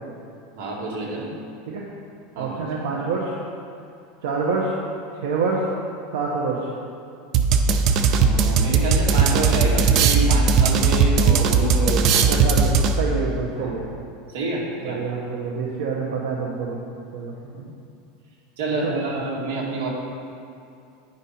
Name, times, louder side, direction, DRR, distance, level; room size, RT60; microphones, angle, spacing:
voice 1, 0.6-1.3 2.3-2.9 8.2-12.5 13.6-13.7 14.3-15.1 18.6-19.9, right 2 dB, 70° right, -3 dB, 2.0 m, -28 dB
voice 2, 2.4-3.3 4.2-4.7 5.1-5.6 6.1-6.7 12.1-13.9 14.8-16.8 17.1-17.3 18.8-19.2, right 4 dB, 90° right, -4 dB, 1.0 m, -26 dB
sound 1, 7.3-13.2, right 5 dB, 35° right, 0.4 m, -18 dB
9.7 x 5.4 x 4.3 m, 2.6 s
supercardioid pair, 170°, 0 cm